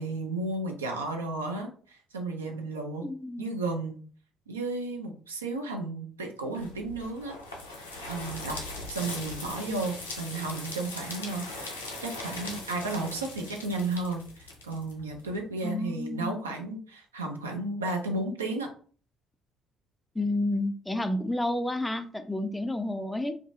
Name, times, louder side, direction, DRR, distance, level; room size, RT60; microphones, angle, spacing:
voice 1, 0.0-3.1 3.4-4.0 4.5-7.4 8.1-8.6 8.9-11.8 12.0-18.7, right 2 dB, 80° right, 2 dB, 0.4 m, -33 dB
voice 2, 3.0-3.5 15.6-16.3 20.2-23.3, left 1 dB, 10° left, 8 dB, 0.3 m, -30 dB
sound 1, 6.5-15.4, left 2 dB, 80° left, 0.5 m, -40 dB
2.4 x 2.2 x 2.6 m, 0.43 s
figure-of-eight pair, 50°, 0 cm